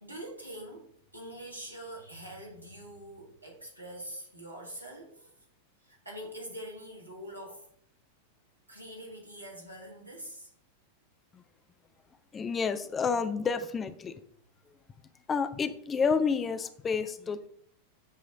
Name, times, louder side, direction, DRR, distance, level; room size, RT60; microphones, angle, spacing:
voice 1, 0.0-0.9 1.1-5.3 5.8-7.6 8.7-10.5, right 1 dB, 85° right, -1 dB, 1.9 m, -44 dB
voice 2, 12.3-14.2 15.3-17.5, left 5 dB, 20° left, 11 dB, 0.4 m, -30 dB
7.6 x 3.1 x 5.0 m, 0.68 s
figure-of-eight pair, 90°, 0 cm